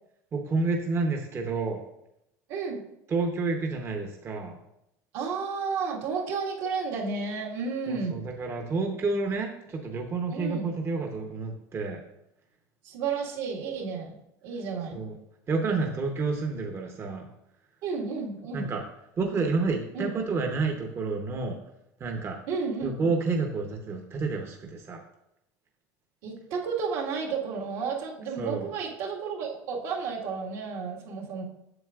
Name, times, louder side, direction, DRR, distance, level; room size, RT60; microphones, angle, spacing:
voice 1, 0.3-1.8 3.1-4.6 7.9-12.0 14.9-15.2 15.5-17.3 18.5-18.8 19.2-21.6 22.0-22.4 22.8-25.0 28.4-28.7, right 3 dB, 30° right, 2 dB, 0.9 m, -29 dB
voice 2, 2.5-2.8 5.1-8.2 10.3-10.7 12.8-14.2 14.4-15.0 17.8-18.7 19.9-20.1 22.5-22.9 26.2-31.4, right 5 dB, 70° right, -2 dB, 1.8 m, -32 dB
7.9 x 7.0 x 2.4 m, 0.83 s
supercardioid pair, 110°, 9 cm